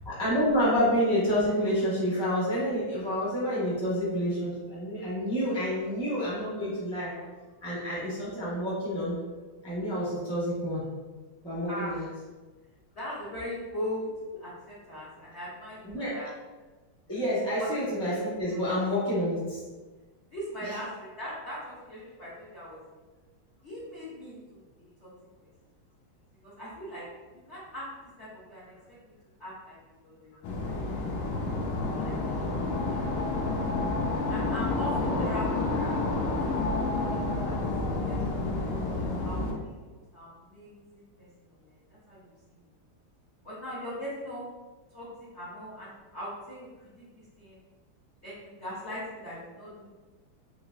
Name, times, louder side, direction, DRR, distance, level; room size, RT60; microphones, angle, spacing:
voice 1, 0.1-7.1 7.6-9.2 9.6-10.8 11.4-12.1 15.8-16.2 17.1-19.6 20.7-20.8 35.1-35.3, equal, 5° left, -9 dB, 0.5 m, -28 dB
voice 2, 11.7-12.1 12.9-14.1 14.4-16.3 17.6-17.7 20.3-22.8 23.6-24.6 25.0-25.1 26.4-27.0 27.5-27.9 28.2-28.7 29.0-29.1 29.4-30.7 31.9-32.6 34.3-37.6 37.9-38.7 39.2-42.2 43.4-44.4 44.9-47.6 48.2-49.9, equal, 65° left, -9 dB, 0.6 m, -40 dB
sound 1, 30.4-39.5, left 3 dB, 85° left, 1.5 m, -29 dB
3.8 x 3.1 x 2.3 m, 1.3 s
omnidirectional pair, 2.3 m